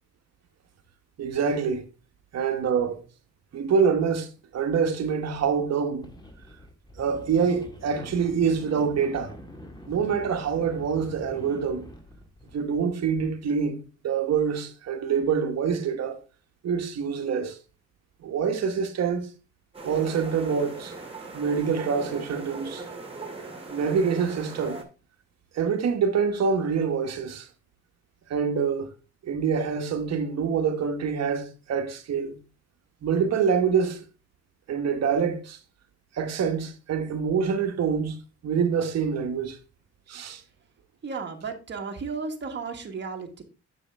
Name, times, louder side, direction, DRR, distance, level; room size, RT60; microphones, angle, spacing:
voice 1, 1.2-1.8 2.3-3.0 3.5-4.3 4.5-6.0 7.0-9.3 9.8-11.9 12.5-13.8 14.0-16.2 16.6-17.6 18.2-19.3 19.8-20.9 21.3-22.8 23.7-24.8 25.5-27.5 28.3-28.9 29.2-32.4 33.0-34.0 34.7-35.6 36.2-38.2 38.4-39.6 40.1-40.4, right 6 dB, 60° right, 1.2 m, -25 dB
sound 1, 5.3-5.7 6.0-13.3, left 1 dB, 15° left, 1.5 m, -44 dB
sound 2, 19.7-24.8, right 3 dB, 20° right, 2.0 m, -39 dB
voice 2, 41.0-43.4, right 4 dB, 35° right, 1.4 m, -34 dB
7.2 x 6.2 x 3.4 m
cardioid pair, 90°, 30 cm